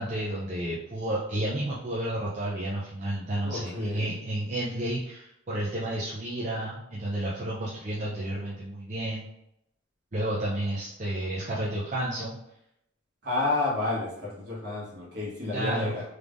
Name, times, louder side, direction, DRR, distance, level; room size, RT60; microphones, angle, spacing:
voice 1, 0.0-9.2 10.1-12.4 15.5-16.0, right 1 dB, 35° right, -6 dB, 0.5 m, -31 dB
voice 2, 3.4-4.1 13.2-16.0, left 2 dB, 55° right, -5 dB, 1.3 m, -30 dB
3.6 x 3.2 x 2.5 m, 0.80 s
head